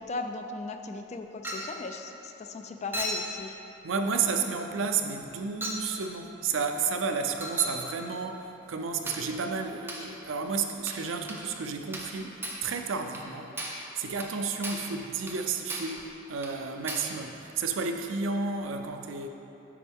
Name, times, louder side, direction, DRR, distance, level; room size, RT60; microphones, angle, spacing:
voice 1, 0.0-3.6, left 3 dB, 35° left, 6 dB, 0.3 m, -37 dB
Chink clink, 1.4-1.8 2.9-3.3 4.3-4.5 5.6-5.9 7.4-7.8 9.1-9.3 9.9-10.1 10.9-11.0 11.3-11.4 11.9-12.2 12.4-12.7 13.1-13.3 13.6-13.9 14.2-14.3 14.6-14.9 15.3-15.4 15.7-16.0 16.4-16.5 16.9-17.1, right 1 dB, 10° right, 0.7 m, -36 dB
voice 2, 3.8-19.3, right 5 dB, 75° right, 5 dB, 0.5 m, -32 dB
8.4 x 5.3 x 3.5 m, 3.0 s
head